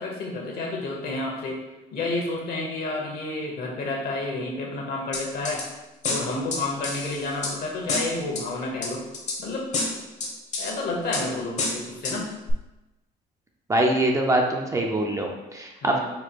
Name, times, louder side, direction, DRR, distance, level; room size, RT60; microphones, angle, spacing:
voice 1, 0.0-1.6 1.9-5.7 6.1-9.0 9.4-9.7 10.6-12.3 15.8-16.1, left 2 dB, 65° left, -1 dB, 1.2 m, -30 dB
sound 1, 5.1-5.6 6.0-7.5 7.9-8.4 8.8-9.4 9.7-10.7 11.1-11.2 11.6-12.2 12.5-12.6, left 3 dB, 45° left, 1.0 m, -28 dB
voice 2, 13.7-16.1, right 1 dB, 20° right, 1 dB, 0.6 m, -23 dB
4.6 x 2.2 x 4.4 m, 1.0 s
cardioid pair, 110°, 17 cm